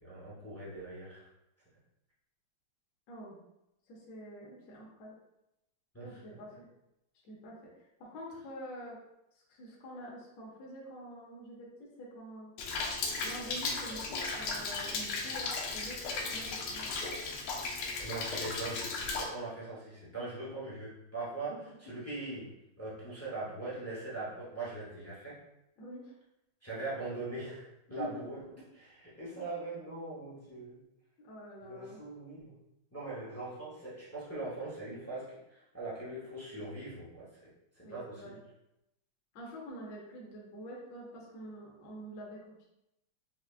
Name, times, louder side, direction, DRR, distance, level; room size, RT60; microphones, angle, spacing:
voice 1, 0.0-1.3 5.9-6.2 18.0-25.4 26.6-28.4 28.7-30.8 31.6-32.6 32.9-37.5 37.8-38.3, right 2 dB, 20° left, -9 dB, 0.3 m, -41 dB
voice 2, 3.9-5.1 6.0-6.6 7.2-7.6 8.0-9.0 9.6-11.7 12.0-12.5 13.2-16.9 21.4-21.7 25.8-26.1 27.9-28.3 31.2-32.0 37.8-38.4 39.3-42.5, equal, 65° left, -5 dB, 1.4 m, -46 dB
Rain, 12.6-19.2, left 3 dB, 85° left, 1.5 m, -36 dB
5.8 x 2.3 x 2.4 m, 0.87 s
omnidirectional pair, 2.3 m